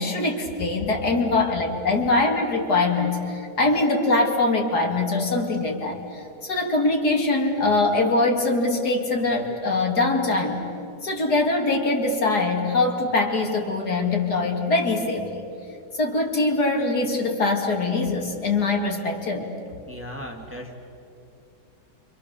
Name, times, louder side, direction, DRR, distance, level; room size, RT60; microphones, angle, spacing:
voice 1, 0.0-10.6 11.0-15.4 15.9-19.5, left 2 dB, 60° left, 2 dB, 3.0 m, -23 dB
voice 2, 19.9-20.7, equal, 5° right, 1 dB, 2.2 m, -37 dB
29.0 x 26.0 x 7.0 m, 2.7 s
omnidirectional pair, 1.9 m